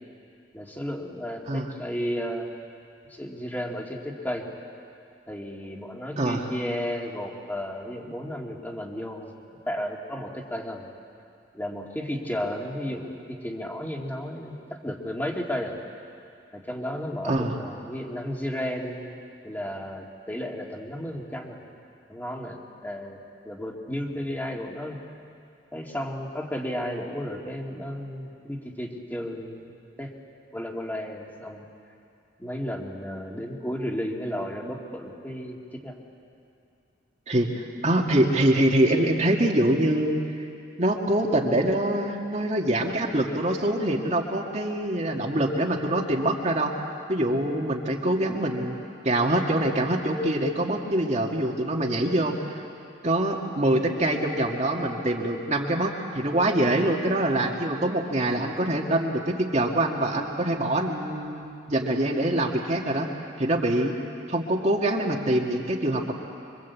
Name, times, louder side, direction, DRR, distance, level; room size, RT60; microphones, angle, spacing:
voice 1, 0.5-2.5 3.1-4.5 5.3-9.3 9.7-10.9 11.5-15.8 16.5-19.1 19.4-21.6 22.1-25.0 25.7-30.1 30.5-31.6 32.4-36.0, equal, 10° left, 0 dB, 2.5 m, -33 dB
voice 2, 17.2-17.6 37.3-40.2 40.8-46.7 47.1-48.8 49.0-52.4 53.0-63.1 63.4-64.0 64.3-66.1, right 1 dB, 40° right, 1 dB, 2.0 m, -24 dB
25.5 x 24.5 x 8.5 m, 2.6 s
head